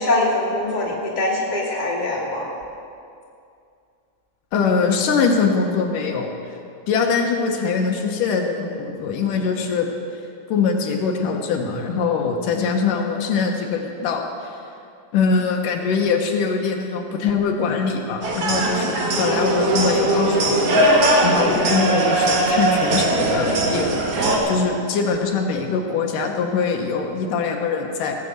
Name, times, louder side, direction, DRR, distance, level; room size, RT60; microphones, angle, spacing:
voice 1, 0.0-2.5, left 2 dB, 15° left, -4 dB, 1.9 m, -23 dB
voice 2, 4.5-6.3 6.9-9.9 10.5-14.6 15.1-20.9 21.2-28.2, left 5 dB, 80° left, 2 dB, 2.6 m, -22 dB
sound 1, 18.2-24.4, right 1 dB, 50° right, 2.2 m, -19 dB
18.0 x 6.8 x 7.8 m, 2.5 s
omnidirectional pair, 3.8 m